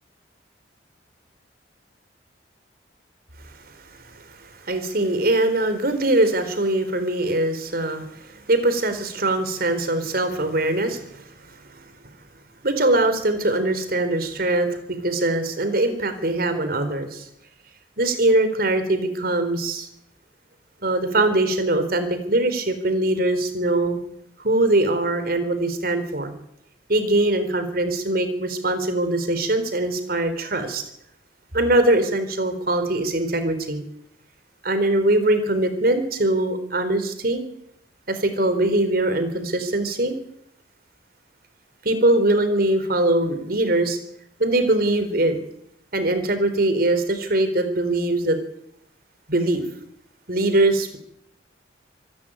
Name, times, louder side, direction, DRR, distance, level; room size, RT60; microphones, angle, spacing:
voice 1, 4.7-8.0 8.5-11.0 12.6-14.7 15.0-17.2 18.0-19.9 20.8-24.0 24.4-26.3 26.9-30.8 31.5-33.8 34.6-37.4 38.1-40.2 41.8-44.0 44.4-45.4 45.9-48.4 49.3-49.6 50.3-51.0, right 1 dB, 55° right, 9 dB, 3.9 m, -22 dB
26.0 x 13.0 x 9.0 m, 0.75 s
head